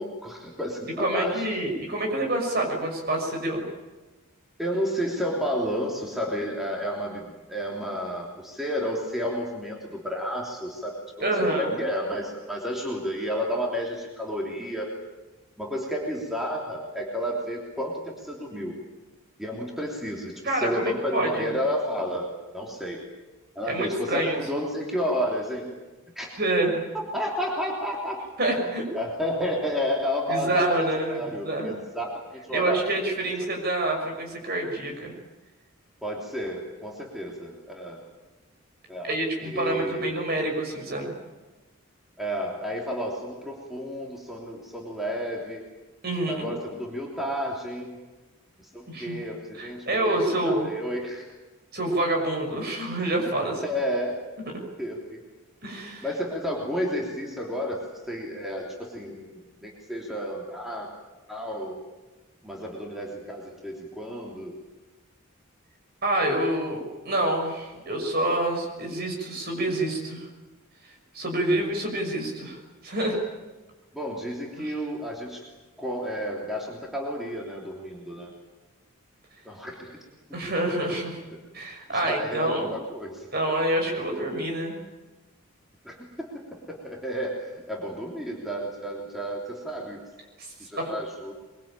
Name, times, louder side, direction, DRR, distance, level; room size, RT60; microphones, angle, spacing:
voice 1, 0.0-1.4 4.6-14.9 15.6-18.7 19.4-22.3 22.5-23.0 23.5-25.8 26.1-26.3 27.1-28.2 28.9-32.8 36.0-38.0 38.9-40.3 42.2-45.6 46.3-48.0 48.6-51.3 53.6-54.1 54.8-55.2 56.0-60.9 61.3-61.8 62.4-64.5 73.9-75.4 75.8-78.3 79.4-80.0 81.9-83.3 85.8-90.0 90.6-91.3, equal, ahead, -2 dB, 3.2 m, -31 dB
voice 2, 1.0-3.6 11.2-11.8 20.4-21.6 23.7-24.4 26.4-26.8 28.4-28.9 30.3-31.8 32.5-35.1 39.0-41.1 46.0-46.5 48.9-49.2 49.6-50.7 51.7-53.6 55.6-56.1 66.0-70.2 71.1-73.2 74.6-74.8 80.3-81.2 81.5-82.7 83.3-84.8 90.4-90.9, right 1 dB, 45° right, 2 dB, 6.3 m, -27 dB
24.0 x 23.0 x 8.9 m, 1.2 s
head